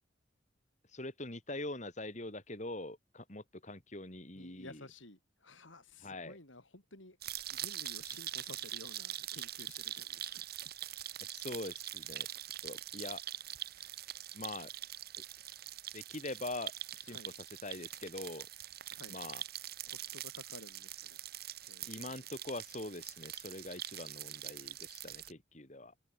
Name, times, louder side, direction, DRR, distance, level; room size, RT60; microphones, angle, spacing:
voice 1, 0.9-4.9 6.0-6.4 11.2-12.3 12.6-13.2 14.3-14.7 15.9-16.7 17.0-17.2 17.6-18.5 19.1-19.4 21.9-25.9, left 2 dB, 40° left, 3.4 m, -43 dB
voice 2, 4.3-7.2 7.5-10.5 17.1-17.3 18.9-19.2 19.8-21.2 21.6-22.1, left 2 dB, 85° left, 8.0 m, -54 dB
sound 1, 7.2-25.3, right 12 dB, 50° right, 1.8 m, -44 dB
head